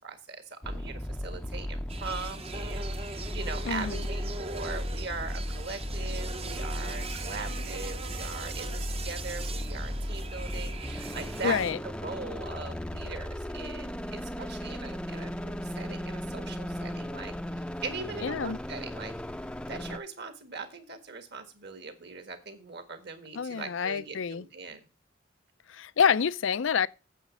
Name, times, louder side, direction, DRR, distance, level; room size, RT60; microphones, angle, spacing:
voice 1, 0.0-17.3 17.8-19.1 19.7-24.8, right 4 dB, 60° right, 1.7 m, -40 dB
sound 1, 0.6-20.0, equal, 5° left, 0.5 m, -36 dB
sound 2, 1.9-11.7, right 4 dB, 30° right, 0.7 m, -41 dB
voice 2, 3.7-4.0 11.4-11.8 18.2-18.6 23.3-24.5 25.7-26.9, left 6 dB, 70° left, 0.5 m, -27 dB
9.2 x 7.4 x 6.2 m
head